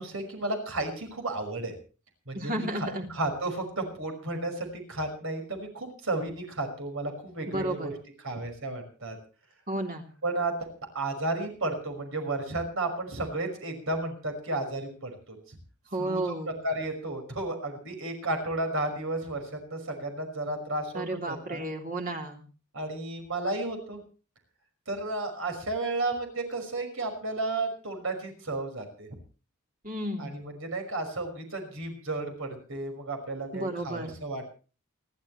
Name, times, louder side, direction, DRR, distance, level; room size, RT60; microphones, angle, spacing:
voice 1, 0.0-1.7 2.3-7.9 8.2-9.2 10.2-10.7 10.9-15.6 16.0-21.6 22.7-24.0 24.9-29.1 30.2-34.4, right 2 dB, 65° right, 4 dB, 5.7 m, -33 dB
voice 2, 2.3-3.1 7.5-7.9 9.7-10.1 15.9-16.6 20.9-22.4 29.8-30.4 33.5-34.2, right 1 dB, 40° right, 2 dB, 3.3 m, -32 dB
28.5 x 12.5 x 3.3 m, 0.37 s
head